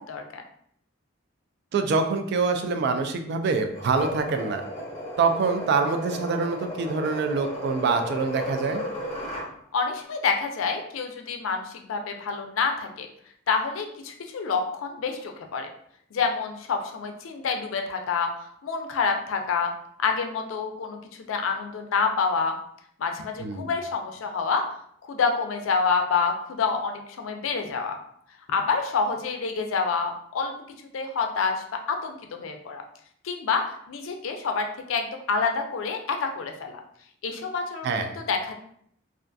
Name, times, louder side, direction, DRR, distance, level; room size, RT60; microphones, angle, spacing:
voice 1, 0.1-0.4 9.7-13.1 13.5-15.7 16.1-18.3 18.6-19.7 20.0-21.0 21.3-22.6 23.0-24.6 25.0-28.0 28.5-30.5 30.9-32.8 33.2-36.8 37.2-37.9 38.2-38.5, left 5 dB, 80° left, 4 dB, 0.4 m, -27 dB
voice 2, 1.7-4.6 5.2-8.8 23.4-23.7 37.8-38.1, right 4 dB, 55° right, 6 dB, 0.3 m, -25 dB
sound 1, 3.7-9.5, equal, 35° left, 0.7 m, -35 dB
2.4 x 2.3 x 2.5 m, 0.66 s
head